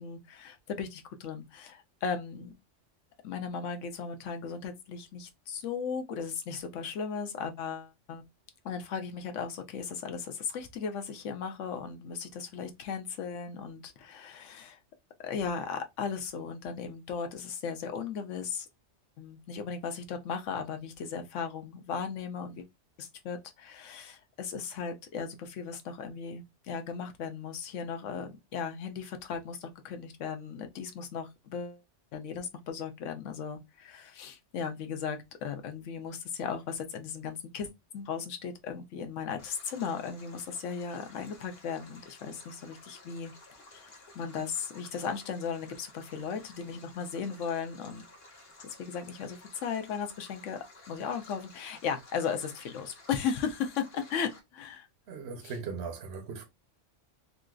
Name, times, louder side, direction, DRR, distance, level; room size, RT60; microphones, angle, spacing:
voice 1, 0.0-2.5 3.2-8.2 8.6-14.8 15.2-18.7 19.2-22.7 23.0-31.8 32.1-37.7 37.9-43.3 43.7-48.0 48.6-50.6 50.9-54.9 55.4-55.5, left 6 dB, 80° left, 1.0 m, -36 dB
Stream, 39.4-54.4, left 2 dB, 55° left, 1.2 m, -54 dB
voice 2, 55.1-56.4, right 5 dB, 65° right, 0.9 m, -38 dB
3.9 x 2.5 x 2.3 m
omnidirectional pair, 1.3 m